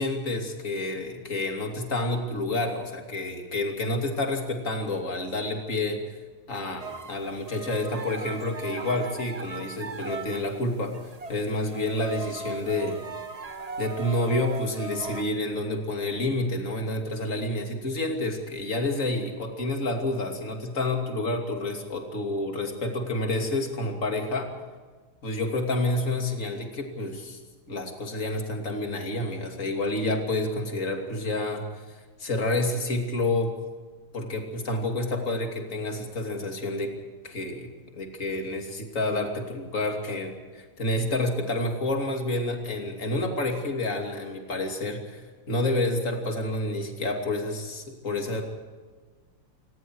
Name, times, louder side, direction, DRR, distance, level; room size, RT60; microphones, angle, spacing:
voice 1, 0.0-6.0 6.5-10.9 11.3-13.0 13.8-24.5 25.2-27.4 27.7-33.5 34.1-36.9 37.2-37.7 38.0-45.2 45.5-48.4, left 2 dB, 35° left, 3 dB, 3.1 m, -29 dB
sound 1, 6.8-10.6 10.9-15.2, right 4 dB, 50° right, 0.4 m, -38 dB
27.0 x 21.0 x 4.8 m, 1.4 s
omnidirectional pair, 2.3 m